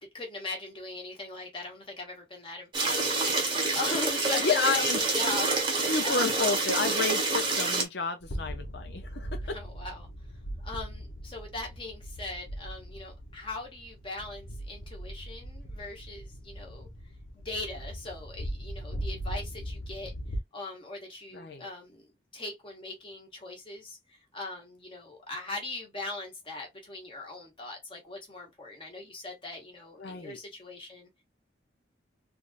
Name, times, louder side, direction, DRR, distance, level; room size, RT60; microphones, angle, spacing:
voice 1, 0.1-6.4 9.4-10.1 10.6-16.9 17.3-20.1 20.5-31.2, left 2 dB, 25° left, 1.3 m, -40 dB
sound 1, 2.7-7.8, right 3 dB, 25° right, 1.0 m, -27 dB
voice 2, 4.3-5.0 5.9-9.6 21.3-21.7 30.0-30.4, left 4 dB, 60° left, 0.6 m, -30 dB
sound 2, 8.2-20.4, equal, 85° left, 1.0 m, -39 dB
3.5 x 2.5 x 2.5 m
head